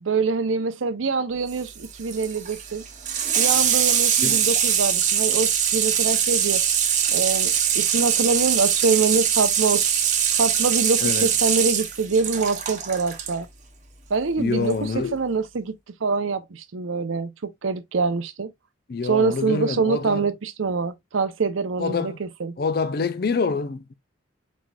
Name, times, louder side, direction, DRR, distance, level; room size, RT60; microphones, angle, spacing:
voice 1, 0.0-2.8 3.4-6.6 7.1-9.9 10.4-13.5 14.1-15.7 16.0-18.5 19.0-22.5, right 4 dB, 85° right, 0.6 m, -25 dB
Water tap faucet / Sink (filling or washing), 1.5-13.3 14.6-14.7, right 8 dB, 40° right, 0.9 m, -22 dB
voice 2, 11.0-11.3 14.4-15.2 18.9-20.3 21.8-22.2 22.6-23.9, left 4 dB, 50° left, 0.5 m, -26 dB
4.6 x 4.1 x 2.3 m
head